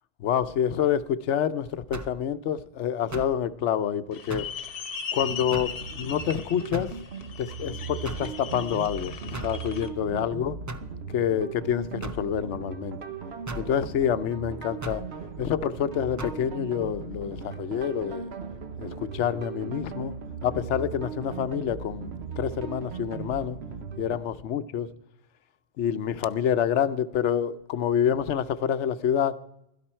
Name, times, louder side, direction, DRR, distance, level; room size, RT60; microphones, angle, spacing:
voice 1, 0.2-4.5 5.1-6.9 7.4-9.1 9.4-10.6 11.1-13.0 13.5-15.0 15.4-18.3 18.8-20.1 20.4-23.6 24.0-24.9 25.8-29.3, left 9 dB, 80° left, 1.0 m, -27 dB
sound 1, 1.9-2.2 3.1-3.4 4.3-4.6 5.5-5.8 6.7-7.0 8.1-8.3 9.3-9.6 10.7-10.9 12.0-12.3 13.5-13.7 14.8-15.1 16.2-16.4, right 2 dB, 25° right, 0.4 m, -36 dB
sound 2, 4.1-9.9, left 7 dB, 55° left, 1.1 m, -38 dB
sound 3, 5.1-24.2, right 6 dB, 65° right, 1.2 m, -38 dB
16.0 x 12.5 x 4.4 m
omnidirectional pair, 1.2 m